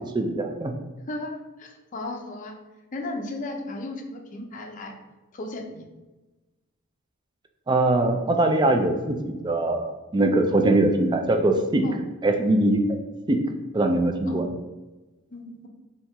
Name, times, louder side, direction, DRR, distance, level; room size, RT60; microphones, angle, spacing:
voice 1, 0.0-0.7 7.7-11.8 12.2-12.8 13.3-13.4 13.7-14.5, right 2 dB, 20° right, 4 dB, 0.3 m, -22 dB
voice 2, 1.1-2.5 2.9-4.9 5.3-5.9 11.8-11.9 14.3-14.4 15.3-15.7, left 2 dB, 35° left, 2 dB, 0.5 m, -35 dB
3.4 x 2.8 x 4.3 m, 1.1 s
head